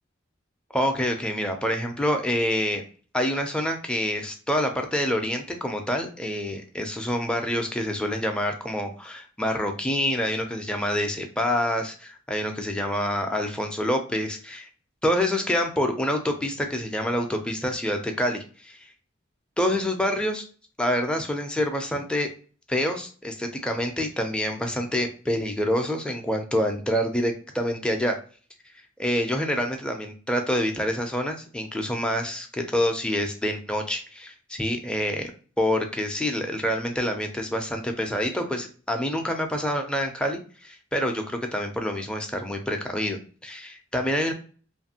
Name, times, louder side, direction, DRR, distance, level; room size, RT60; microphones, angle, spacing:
voice 1, 0.7-2.8 3.1-14.7 15.0-18.8 19.6-20.4 20.8-22.3 22.7-28.2 29.0-35.3 35.6-44.3, equal, 5° left, 3 dB, 0.4 m, -27 dB
2.6 x 2.5 x 2.8 m, 0.40 s
head